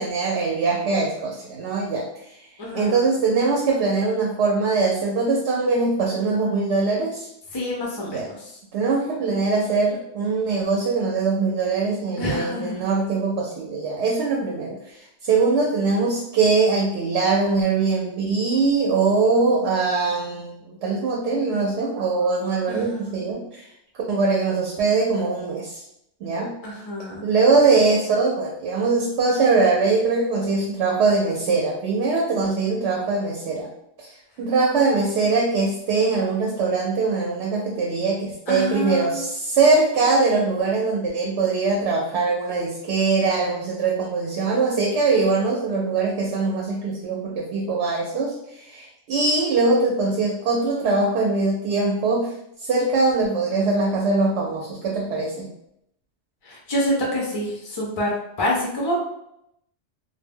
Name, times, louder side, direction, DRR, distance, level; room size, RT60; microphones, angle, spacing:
voice 1, 0.0-2.4 2.7-7.3 8.0-8.3 8.7-25.8 26.2-26.5 27.2-33.7 34.0-52.3 52.6-55.5, right 3 dB, 70° right, -2 dB, 0.8 m, -22 dB
voice 2, 2.6-3.0 7.5-8.4 12.2-12.9 22.7-23.1 26.6-27.3 38.5-39.2 56.4-58.1 58.4-58.9, left 1 dB, 45° left, -3 dB, 0.3 m, -27 dB
2.2 x 2.0 x 3.5 m, 0.79 s
omnidirectional pair, 1.2 m